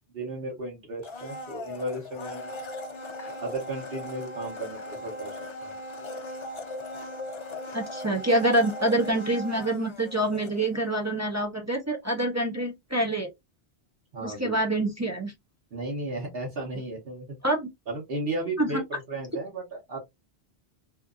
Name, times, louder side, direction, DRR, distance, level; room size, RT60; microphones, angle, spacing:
voice 1, 0.1-2.6 3.4-5.7 14.1-14.6 15.7-17.4 17.9-20.0, right 2 dB, 70° right, 1.1 m, -34 dB
Domestic sounds home sounds, 1.0-11.0 11.3-11.4, left 1 dB, 50° left, 0.3 m, -39 dB
voice 2, 7.7-13.3 14.2-15.3 17.4-17.7 18.6-18.8, right 1 dB, 25° right, 0.4 m, -26 dB
2.8 x 2.4 x 2.4 m
omnidirectional pair, 1.0 m